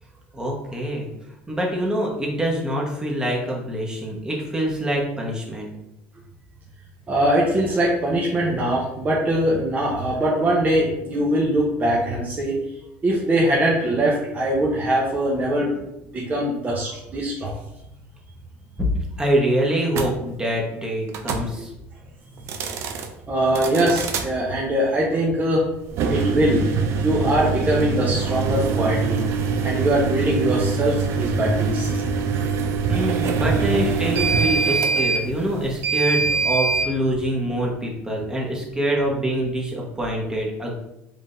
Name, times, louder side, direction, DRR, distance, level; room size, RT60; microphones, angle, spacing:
voice 1, 0.3-1.1 1.5-5.7 18.8-18.9 19.2-21.7 32.9-40.7, right 1 dB, 15° right, -2 dB, 1.3 m, -25 dB
voice 2, 7.1-12.6 13.0-15.7 16.1-17.6 23.3-25.6 26.1-26.6 27.0-29.2 29.6-31.9 32.2-32.3, right 1 dB, 30° right, -4 dB, 1.0 m, -22 dB
sound 1, 19.9-20.1 21.1-21.5 22.4-23.1 23.5-24.3 25.9-36.9, right 5 dB, 60° right, 0.6 m, -24 dB
4.9 x 3.6 x 2.7 m, 0.85 s
supercardioid pair, 100°, 5 cm